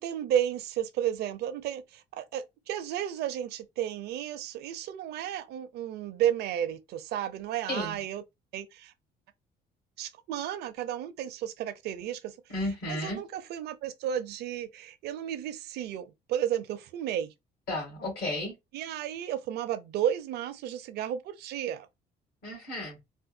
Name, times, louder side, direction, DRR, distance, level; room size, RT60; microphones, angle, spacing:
voice 1, 0.0-8.2 8.5-8.9 10.0-12.3 12.9-17.3 18.7-21.9, right 10 dB, 75° right, 0.6 m, -33 dB
voice 2, 7.7-8.0 12.5-13.2 17.7-18.5 22.4-23.0, left 1 dB, 70° left, 2.5 m, -33 dB
4.2 x 2.2 x 2.6 m
cardioid pair, 110°, 17 cm